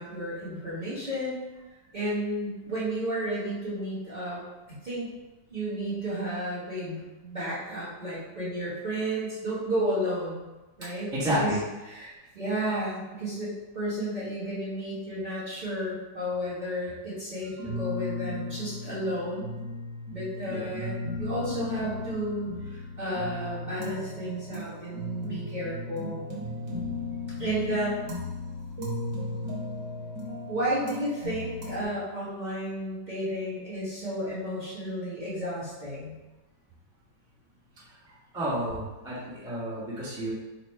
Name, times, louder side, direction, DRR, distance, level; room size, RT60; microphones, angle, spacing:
voice 1, 0.0-1.4 1.9-4.4 4.8-5.1 5.5-10.5 10.8-11.1 11.4-11.5 11.9-19.5 20.1-26.2 27.4-28.1 30.5-36.2, right 1 dB, 30° right, -10 dB, 1.1 m, -32 dB
voice 2, 11.1-11.6 20.4-20.7 37.8-38.0 38.3-40.3, equal, 5° right, -10 dB, 0.7 m, -30 dB
sound 1, 17.6-31.9, left 2 dB, 70° right, 1.6 m, -36 dB
4.0 x 2.2 x 4.5 m, 1.1 s
omnidirectional pair, 2.1 m